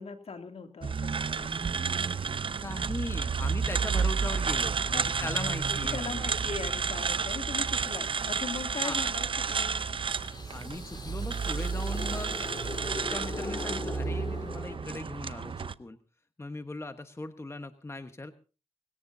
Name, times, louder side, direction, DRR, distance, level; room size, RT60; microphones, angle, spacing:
voice 1, 0.0-1.7 4.8-10.0, left 5 dB, 60° left, 5 dB, 2.8 m, -40 dB
sound 1, 0.8-15.7, right 5 dB, 50° right, 0.7 m, -31 dB
voice 2, 2.6-4.8 5.2-6.2 8.7-9.1 10.5-12.5 13.1-16.0 16.4-18.3, left 2 dB, 25° left, 8 dB, 1.2 m, -39 dB
sound 2, 10.2-15.3, left 3 dB, 40° left, 2.3 m, -40 dB
22.5 x 17.0 x 2.8 m, 0.35 s
cardioid pair, 55°, 11 cm